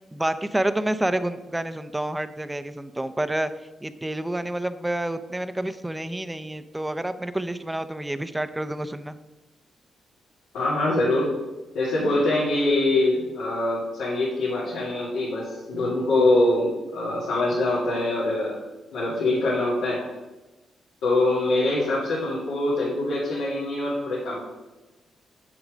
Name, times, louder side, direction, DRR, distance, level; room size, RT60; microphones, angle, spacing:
voice 1, 0.1-3.5 3.8-9.2, right 1 dB, 10° right, 12 dB, 0.6 m, -28 dB
voice 2, 10.5-11.3 11.7-18.6 18.9-20.0 21.0-24.4, left 2 dB, 85° left, -8 dB, 2.4 m, -24 dB
7.3 x 6.9 x 5.1 m, 1.1 s
cardioid pair, 70°, 0 cm